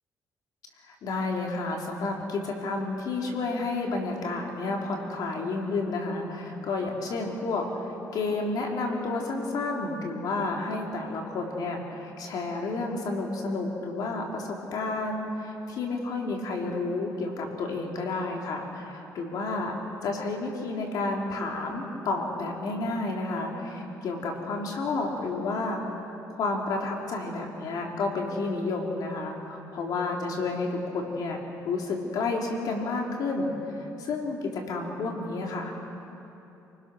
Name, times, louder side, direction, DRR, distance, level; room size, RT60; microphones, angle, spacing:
voice 1, 0.8-19.8 20.0-31.4 31.6-35.9, left 3 dB, 70° left, 1 dB, 3.6 m, -31 dB
28.5 x 20.0 x 6.4 m, 2.9 s
cardioid pair, 105°, 7 cm